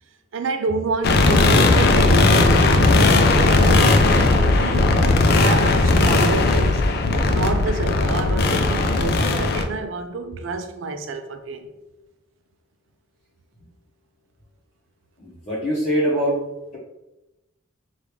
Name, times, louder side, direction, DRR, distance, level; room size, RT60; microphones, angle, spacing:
voice 1, 0.3-6.8 7.3-11.7, right 3 dB, 75° right, 0.4 m, -28 dB
sound 1, 1.0-9.6, left 2 dB, 55° left, 0.4 m, -17 dB
voice 2, 15.2-16.4, equal, 35° left, 0.9 m, -23 dB
5.0 x 2.4 x 3.1 m
head